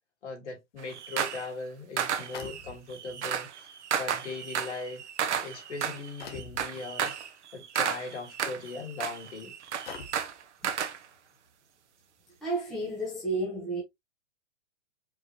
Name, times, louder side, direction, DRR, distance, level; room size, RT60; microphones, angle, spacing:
voice 1, 0.2-3.5 3.9-5.0 5.4-7.1 7.5-9.5, left 3 dB, 70° left, 2.7 m, -39 dB
sound 1, 0.8-1.5 2.0-11.0, right 8 dB, 65° right, 1.0 m, -33 dB
sound 2, 2.3-3.1 4.1-4.2 4.9-5.2 6.2-6.7 8.0-8.1 8.7-8.8 9.9-10.4, left 5 dB, 50° left, 1.1 m, -43 dB
voice 2, 12.4-13.8, right 2 dB, ahead, 0.8 m, -31 dB
5.1 x 3.3 x 2.7 m
hypercardioid pair, 175°, 37 cm